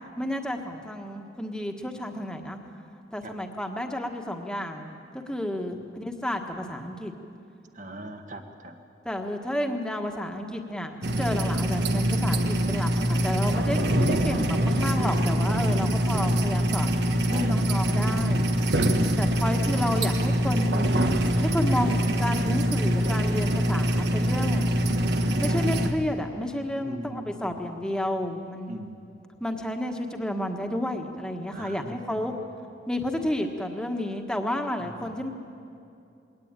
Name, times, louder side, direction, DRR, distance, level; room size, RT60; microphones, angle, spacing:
voice 1, 0.2-2.6 3.1-7.1 9.0-18.5 19.2-20.9 21.4-24.7 25.4-28.8 29.4-32.3 32.9-35.3, left 1 dB, 5° left, 4 dB, 1.5 m, -31 dB
voice 2, 7.7-8.8 17.3-17.7 26.8-27.8 28.7-29.0 31.5-32.2 34.9-35.0, right 1 dB, 45° right, 6 dB, 1.5 m, -40 dB
sound 1, 11.0-25.9, equal, 70° right, 1.4 m, -24 dB
21.0 x 18.5 x 9.0 m, 2.6 s
head